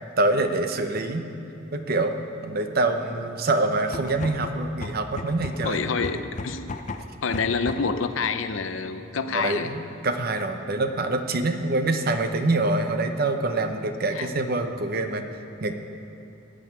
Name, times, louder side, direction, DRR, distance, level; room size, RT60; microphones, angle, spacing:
voice 1, 0.2-1.2 1.7-2.2 2.4-5.8 9.3-15.2 15.6-15.7, right 2 dB, 50° right, 7 dB, 0.8 m, -25 dB
sound 1, 3.8-8.0, left 3 dB, 35° left, 0.5 m, -36 dB
voice 2, 5.6-6.7 7.2-9.8 14.1-14.4, left 5 dB, 75° left, 9 dB, 0.7 m, -27 dB
15.0 x 5.2 x 9.5 m, 2.9 s
head